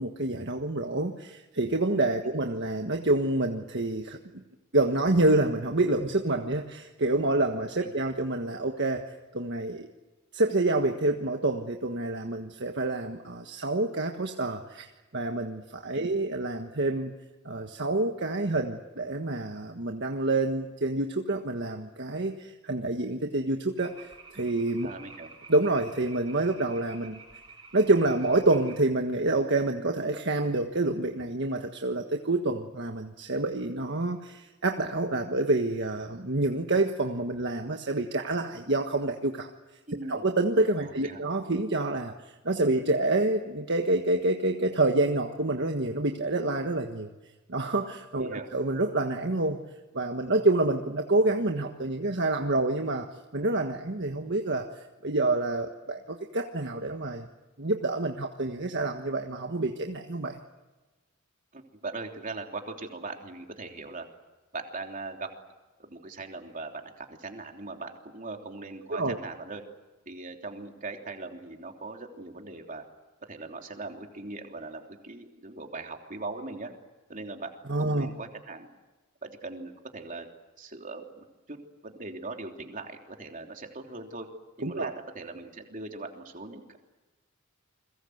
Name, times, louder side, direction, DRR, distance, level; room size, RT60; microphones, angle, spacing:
voice 1, 0.0-4.4 4.7-9.0 9.3-9.9 10.3-17.1 17.4-24.9 25.5-27.2 27.7-39.5 40.1-42.1 42.4-47.1 47.5-49.6 49.9-53.1 53.3-54.7 55.0-57.3 57.6-60.4 68.9-69.2 77.7-78.1 84.6-84.9, right 2 dB, 55° right, 4 dB, 1.5 m, -27 dB
sound 1, 23.8-28.8, right 4 dB, 20° right, 6.5 m, -50 dB
voice 2, 24.8-25.3 39.9-40.2 40.8-41.2 48.2-48.5 61.5-64.1 64.5-65.3 65.8-69.6 70.0-72.8 73.2-76.7 77.1-78.7 79.2-80.3 80.6-81.6 81.8-84.3 84.6-86.8, right 3 dB, 40° right, 3 dB, 3.3 m, -40 dB
30.0 x 22.5 x 8.0 m, 1.2 s
head